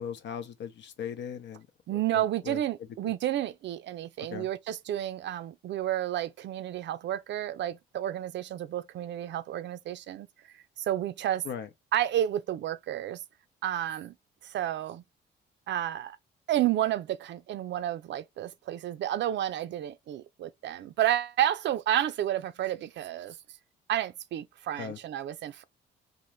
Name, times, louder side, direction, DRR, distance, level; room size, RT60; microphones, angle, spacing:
voice 1, 0.0-1.7 1.9-2.6 3.0-3.1 4.3-4.5 11.4-11.7 24.8-25.0, left 8 dB, 65° left, 0.7 m, -38 dB
voice 2, 1.9-10.3 10.9-11.4 11.9-13.2 13.6-14.1 14.5-15.0 15.7-16.2 16.5-23.4 23.9-25.6, right 12 dB, 65° right, 0.5 m, -31 dB
3.8 x 2.5 x 3.2 m
cardioid pair, 90°, 20 cm